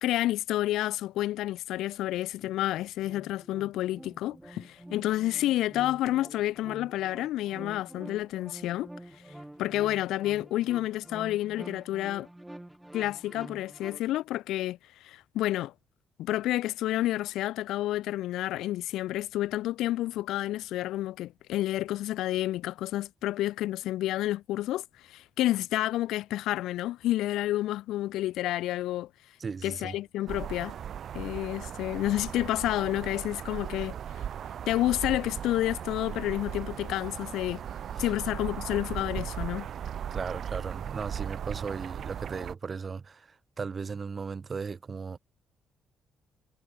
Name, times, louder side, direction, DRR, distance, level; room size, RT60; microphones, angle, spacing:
voice 1, 0.0-8.9 9.6-12.3 12.9-15.7 16.2-29.1 29.6-30.7 31.1-33.9 34.7-37.6 38.0-39.7, left 15 dB, 90° left, 0.4 m, -30 dB
sound 1, 2.7-14.0, right 1 dB, 10° right, 2.5 m, -47 dB
voice 2, 29.4-30.0 37.9-38.0 40.1-45.2, right 5 dB, 40° right, 1.1 m, -36 dB
sound 2, 30.3-42.5, right 9 dB, 65° right, 0.5 m, -37 dB
cardioid pair, 90°, 0 cm